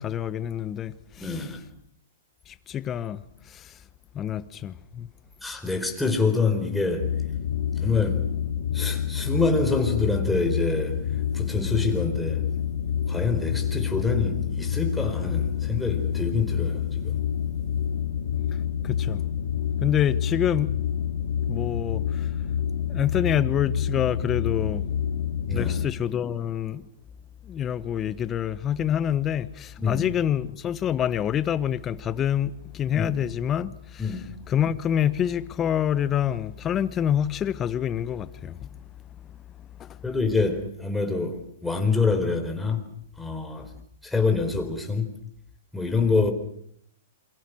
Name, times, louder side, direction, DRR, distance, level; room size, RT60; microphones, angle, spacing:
voice 1, 0.0-1.5 2.5-3.8 4.1-5.1 18.8-19.2 19.8-20.8 21.5-22.3 22.9-24.8 25.5-26.9 27.4-34.1 34.5-38.7 39.8-40.0, left 9 dB, 25° left, 1.2 m, -27 dB
voice 2, 1.2-1.6 5.4-7.2 7.8-8.3 8.7-11.1 11.3-12.5 13.1-17.2 25.5-25.8 29.8-30.1 32.9-33.1 34.0-34.2 40.0-42.8 43.2-43.7 44.0-45.1 45.7-46.3, left 4 dB, 5° left, 4.3 m, -26 dB
sound 1, 7.0-25.9, left 9 dB, 70° left, 3.2 m, -28 dB
28.0 x 23.5 x 6.4 m
hypercardioid pair, 125°, 0 cm